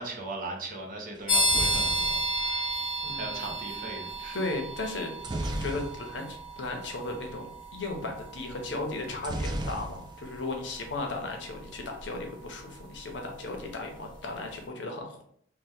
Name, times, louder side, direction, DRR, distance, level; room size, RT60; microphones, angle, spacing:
voice 1, 0.0-2.6 3.1-4.4, right 2 dB, 50° right, 0 dB, 0.7 m, -39 dB
sound 1, 1.2-3.3 5.2-6.4 6.7-6.8 7.0-7.3 9.2-10.4 10.7-11.3, right 1 dB, 25° right, 0.3 m, -35 dB
sound 2, 1.3-13.8, right 1 dB, 25° left, 0.6 m, -33 dB
voice 2, 3.0-3.5 4.3-15.2, left 2 dB, 75° left, 3 dB, 0.7 m, -36 dB
2.8 x 2.2 x 3.4 m, 0.64 s
head